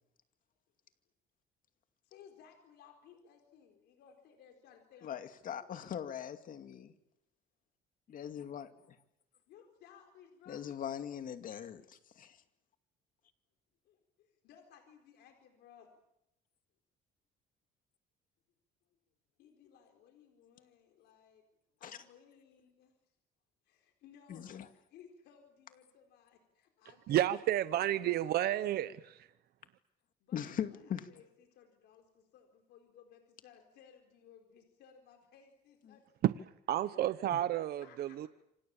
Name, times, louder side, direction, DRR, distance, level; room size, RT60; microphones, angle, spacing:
voice 1, 2.0-5.2 8.7-8.9 9.5-10.6 13.8-15.9 19.4-21.4 21.8-22.9 23.6-28.8 30.2-36.0 37.8-38.3, left 8 dB, 80° left, 4.3 m, -60 dB
voice 2, 5.0-6.9 8.1-8.7 10.5-12.4 21.8-22.0 24.3-24.7 30.3-31.1 37.3-37.4, left 9 dB, 55° left, 2.4 m, -41 dB
voice 3, 27.1-28.9 36.7-38.3, right 12 dB, 65° right, 1.0 m, -31 dB
28.0 x 26.0 x 7.3 m
cardioid pair, 110°, 17 cm